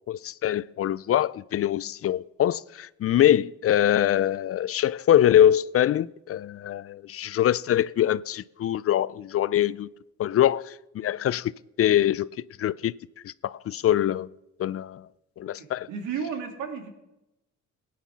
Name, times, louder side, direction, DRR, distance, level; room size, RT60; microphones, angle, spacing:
voice 1, 0.1-9.9 10.2-11.5 11.8-12.3 12.6-12.9 13.2-14.3 14.6-15.1 15.4-15.9, left 11 dB, 50° left, 0.4 m, -23 dB
voice 2, 15.4-16.9, right 6 dB, 80° right, 2.3 m, -34 dB
17.5 x 9.5 x 5.8 m
cardioid pair, 90°, 30 cm